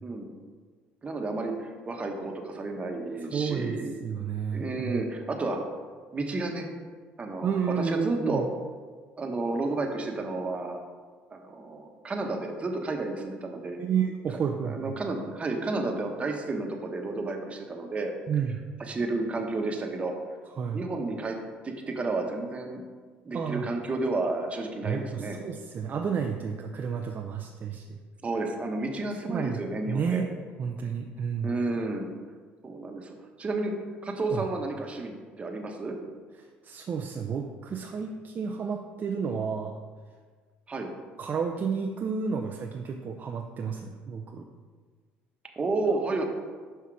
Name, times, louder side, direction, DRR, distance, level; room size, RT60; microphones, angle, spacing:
voice 1, 1.0-4.0 4.5-5.6 6.1-6.7 7.2-7.5 7.8-8.4 9.2-10.8 11.3-13.8 14.6-18.1 18.9-20.1 20.7-21.4 21.6-22.8 23.2-25.4 28.2-30.2 31.4-32.1 32.6-33.1 33.4-33.7 34.0-36.0 40.7-40.9 45.6-46.2, right 2 dB, 30° right, 3 dB, 1.2 m, -31 dB
voice 2, 3.3-5.0 7.4-8.4 13.8-14.9 18.3-18.6 20.6-20.8 23.3-23.6 24.8-28.0 29.3-29.6 29.9-30.3 30.6-31.5 34.3-34.4 36.4-39.8 41.2-44.5, right 6 dB, 45° right, 3 dB, 0.5 m, -31 dB
5.8 x 5.6 x 4.8 m, 1.5 s
supercardioid pair, 85°, 4 cm